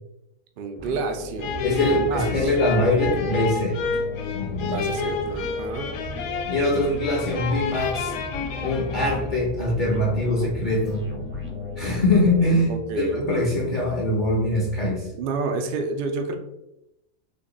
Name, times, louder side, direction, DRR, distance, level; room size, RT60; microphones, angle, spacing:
voice 1, 0.6-2.5 4.6-5.9 12.7-13.3 15.1-16.3, right 3 dB, 75° right, 5 dB, 0.5 m, -29 dB
sound 1, 0.8-13.0, equal, 15° right, 0.5 m, -38 dB
sound 2, 1.4-9.4, left 5 dB, 90° left, 1.1 m, -30 dB
sound 3, 1.4-15.1, left 5 dB, 75° left, 0.4 m, -38 dB
voice 2, 1.6-3.8 4.3-4.9 6.5-8.1 8.6-11.1 11.8-15.1, left 1 dB, 45° left, -3 dB, 0.7 m, -23 dB
3.7 x 2.3 x 3.7 m, 0.87 s
omnidirectional pair, 1.5 m